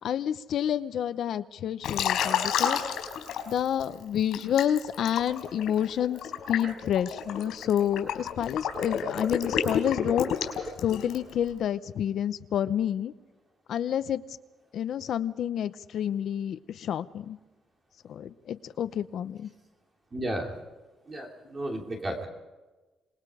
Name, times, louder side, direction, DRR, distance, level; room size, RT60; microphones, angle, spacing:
voice 1, 0.0-2.8 3.5-6.2 6.5-10.4 10.8-13.1 13.7-14.2 14.7-17.4 18.1-19.5, left 10 dB, 55° left, 13 dB, 0.8 m, -29 dB
Liquid, 1.8-3.8 4.3-11.3, left 8 dB, 85° left, 4.6 m, -30 dB
voice 2, 20.1-20.6 21.1-22.3, right 1 dB, 25° right, 1 dB, 3.0 m, -33 dB
27.5 x 20.5 x 5.0 m, 1.2 s
cardioid pair, 180°, 0 cm